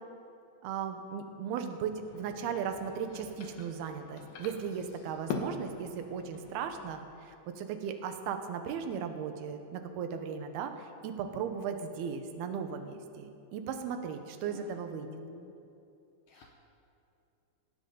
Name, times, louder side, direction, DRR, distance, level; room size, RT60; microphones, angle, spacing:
voice 1, 0.6-15.1, right 7 dB, 70° right, 6 dB, 2.7 m, -37 dB
sound 1, 2.0-7.0, left 5 dB, 70° left, 3.3 m, -43 dB
voice 2, 15.0-15.5 16.3-16.5, left 5 dB, 85° left, 0 dB, 1.8 m, -49 dB
19.5 x 18.5 x 4.0 m, 2.7 s
omnidirectional pair, 5.4 m